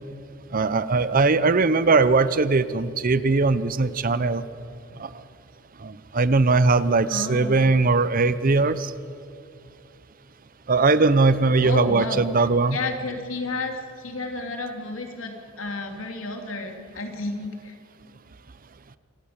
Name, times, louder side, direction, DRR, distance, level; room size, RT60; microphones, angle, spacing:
voice 1, 0.5-4.5 5.0-5.1 5.8-8.9 10.7-12.8, right 3 dB, 45° right, 14 dB, 0.8 m, -20 dB
voice 2, 7.1-7.7 11.6-17.7, left 2 dB, 75° left, 4 dB, 3.0 m, -32 dB
26.5 x 15.0 x 8.8 m, 2.4 s
head